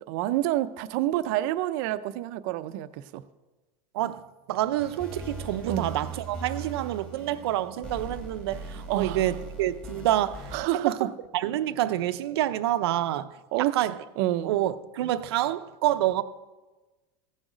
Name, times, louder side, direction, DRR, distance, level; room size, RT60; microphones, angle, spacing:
voice 1, 0.1-3.2 5.7-5.9 8.9-9.3 10.5-11.1 13.5-13.7 14.2-14.6, right 14 dB, 45° right, 0.5 m, -28 dB
voice 2, 3.9-14.0 14.4-16.2, right 13 dB, 90° right, 0.6 m, -28 dB
sound 1, 4.8-10.6, right 3 dB, 5° left, 1.3 m, -39 dB
16.0 x 6.3 x 5.0 m
supercardioid pair, 175°, 13 cm